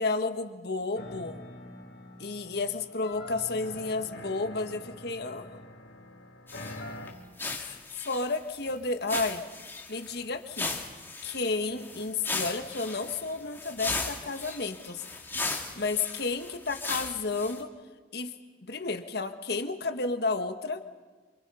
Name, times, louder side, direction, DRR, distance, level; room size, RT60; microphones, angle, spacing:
voice 1, 0.0-1.4 2.2-5.6 7.5-9.4 9.9-10.8 11.2-15.2 15.8-17.7 18.1-18.3 18.7-20.8, left 3 dB, 65° left, 8 dB, 1.6 m, -32 dB
sound 1, 0.9-7.1, left 1 dB, 80° left, 3.2 m, -44 dB
sound 2, 6.5-6.8 7.1-7.2 7.4-8.7 9.1-10.2 10.5-17.6, left 3 dB, 15° left, 2.3 m, -37 dB
28.0 x 27.0 x 5.7 m, 1.3 s
head